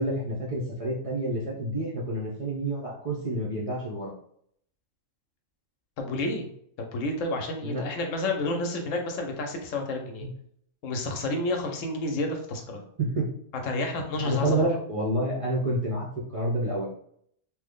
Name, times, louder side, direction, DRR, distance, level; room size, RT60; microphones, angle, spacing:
voice 1, 0.0-4.1 7.6-7.8 10.2-10.3 13.0-13.3 14.2-16.9, right 1 dB, 50° right, -3 dB, 0.4 m, -28 dB
voice 2, 6.0-6.5 6.8-10.3 10.8-12.8 13.6-14.6, left 2 dB, 75° left, 3 dB, 1.0 m, -30 dB
3.0 x 2.0 x 3.5 m, 0.67 s
omnidirectional pair, 1.4 m